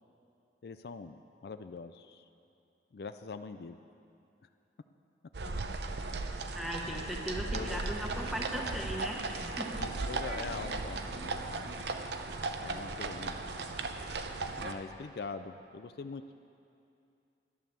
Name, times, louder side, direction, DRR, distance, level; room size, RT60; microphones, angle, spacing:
voice 1, 0.6-2.2 2.9-3.8 7.5-7.8 9.7-11.8 12.6-13.4 14.6-16.2, left 4 dB, 60° left, 9 dB, 0.4 m, -43 dB
sound 1, 5.3-14.7, right 3 dB, 70° right, 0.7 m, -37 dB
voice 2, 6.5-9.9, equal, ahead, -1 dB, 1.3 m, -38 dB
12.0 x 11.0 x 7.0 m, 2.6 s
head